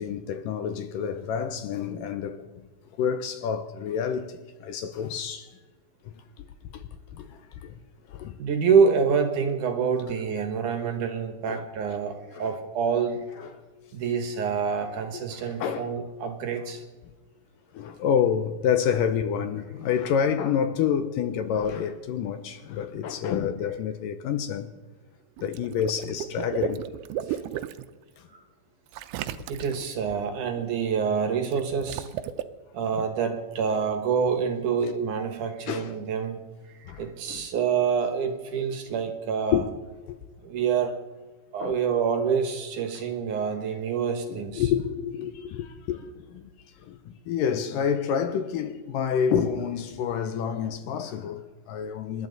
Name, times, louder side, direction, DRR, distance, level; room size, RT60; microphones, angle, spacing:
voice 1, 0.0-2.5 3.0-5.5 6.0-6.5 6.7-6.8 7.1-7.7 8.1-8.4 11.4-11.6 12.3-12.5 13.4-13.5 15.3-15.9 17.7-24.7 25.4-26.8 27.3-27.4 33.0-33.1 35.7-35.9 36.9-37.4 39.5-39.7 40.1-40.2 41.6-41.8 44.3-46.4 46.8-47.0 47.3-52.3, left 8 dB, 75° left, 2.2 m, -28 dB
voice 2, 8.4-13.3 13.9-16.8 28.3-28.4 29.1-29.2 29.5-32.1 32.7-36.4 36.9-39.6 40.4-41.0 41.5-44.7, right 6 dB, 65° right, 2.6 m, -26 dB
Water / Liquid, 25.4-27.9 28.9-30.0 31.4-32.4, right 12 dB, 80° right, 2.5 m, -34 dB
27.5 x 12.0 x 4.0 m
omnidirectional pair, 4.4 m